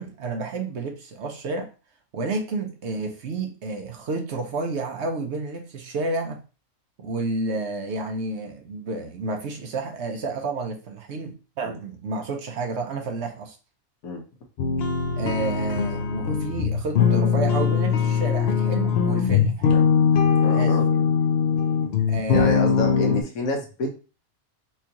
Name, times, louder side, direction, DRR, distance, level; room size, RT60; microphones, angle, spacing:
voice 1, 0.0-1.7 2.1-6.4 7.0-13.6 15.2-19.7 20.4-20.8 22.1-22.9, right 3 dB, 60° right, 0.8 m, -30 dB
sound 1, 14.6-23.2, left 6 dB, 60° left, 0.7 m, -21 dB
voice 2, 20.4-20.9 22.3-23.9, left 2 dB, 85° left, 1.3 m, -29 dB
4.4 x 2.4 x 2.9 m
omnidirectional pair, 1.5 m